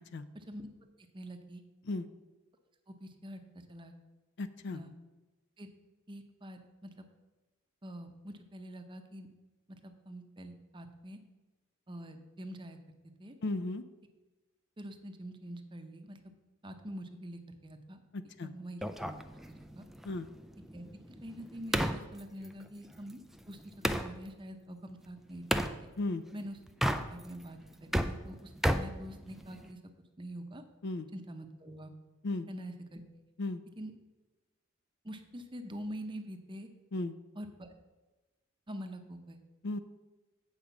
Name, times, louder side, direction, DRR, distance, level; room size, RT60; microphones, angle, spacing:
voice 1, 0.3-0.7 1.1-1.6 2.9-3.4 3.7-3.9 4.7-4.9 5.6-5.7 6.1-7.0 7.8-9.3 9.8-11.2 11.9-12.8 13.2-13.4 14.8-16.2 16.6-19.2 19.7-19.9 20.7-20.9 21.2-23.2 23.5-25.9 26.3-26.6 26.9-29.8 30.2-30.6 31.1-31.9 32.5-33.0 33.8-33.9 35.0-36.7 37.4-37.7 38.7-39.4, equal, 25° right, 6 dB, 0.7 m, -45 dB
voice 2, 4.4-4.8 13.4-13.8 18.1-18.5 20.0-20.3 26.0-26.2 30.8-31.1 32.2-32.5 33.4-33.6 36.9-37.1 39.6-39.8, left 2 dB, 55° left, 12 dB, 0.5 m, -35 dB
sound 1, 18.8-24.1 25.5-25.8 26.7-27.4 27.7-29.7, equal, ahead, 0.3 m, -34 dB
8.4 x 4.9 x 7.0 m, 1.1 s
head